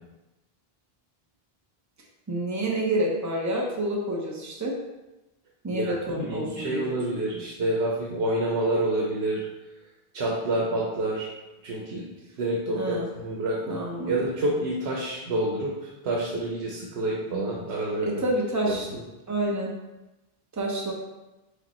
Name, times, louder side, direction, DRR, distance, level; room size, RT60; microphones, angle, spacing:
voice 1, 2.3-4.8 5.6-6.8 12.7-13.1 13.7-14.2 18.0-18.9 19.3-19.7 20.5-20.9, right 1 dB, 20° right, -2 dB, 0.7 m, -28 dB
voice 2, 5.7-9.4 10.1-11.3 11.6-12.0 12.4-13.8 14.1-18.2 18.6-19.0, right 1 dB, 85° right, -3 dB, 1.1 m, -28 dB
5.2 x 2.3 x 4.2 m, 1.0 s
omnidirectional pair, 1.0 m